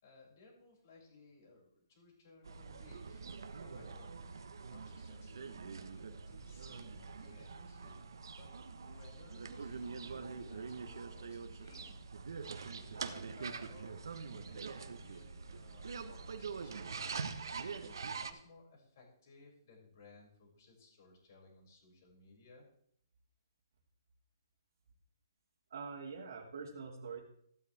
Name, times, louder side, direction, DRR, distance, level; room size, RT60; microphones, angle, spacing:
voice 1, 0.0-3.2 3.6-12.0 12.6-17.4 17.8-22.7, left 3 dB, 45° left, -1 dB, 7.2 m, -61 dB
sound 1, 2.4-18.3, right 5 dB, 75° right, 1.4 m, -44 dB
voice 2, 25.7-27.2, right 5 dB, 60° right, -3 dB, 2.7 m, -44 dB
15.5 x 12.0 x 3.7 m, 0.68 s
hypercardioid pair, 165°, 2 cm